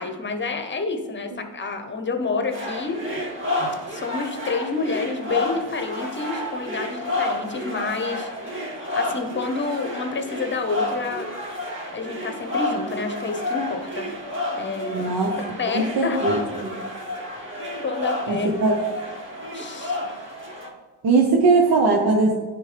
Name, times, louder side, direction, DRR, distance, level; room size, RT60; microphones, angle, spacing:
voice 1, 0.0-3.0 3.9-8.3 8.9-11.3 11.9-14.1 14.6-15.1 15.6-16.2 17.8-18.5 19.5-20.0, left 4 dB, 25° left, 6 dB, 1.0 m, -28 dB
sound 1, 2.5-20.7, left 1 dB, 30° right, 2.1 m, -30 dB
voice 2, 14.9-15.4 15.7-16.8 18.3-18.7 21.0-22.3, right 3 dB, 60° right, 0 dB, 0.9 m, -20 dB
10.0 x 3.6 x 3.3 m, 1.2 s
supercardioid pair, 70°, 42 cm